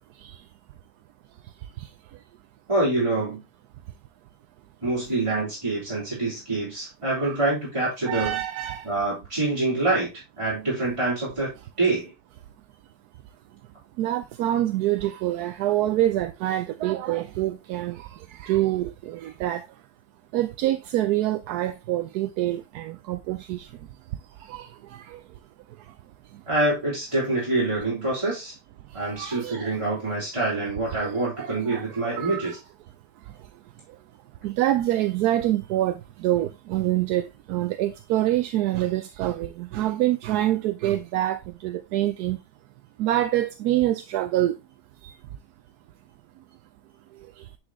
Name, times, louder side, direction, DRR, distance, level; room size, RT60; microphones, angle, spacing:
voice 1, 2.7-3.4 4.8-8.4 8.8-10.1 10.4-11.5 11.8-12.1 26.5-28.5 28.9-32.6, right 2 dB, 15° right, 3.8 m, -26 dB
voice 2, 8.1-8.9 14.0-19.7 20.3-23.7 24.5-25.2 29.0-29.7 31.0-31.1 31.4-32.6 34.4-42.4 43.0-44.6 45.0-45.1, right 14 dB, 75° right, 1.1 m, -26 dB
9.8 x 5.1 x 3.1 m
omnidirectional pair, 1.8 m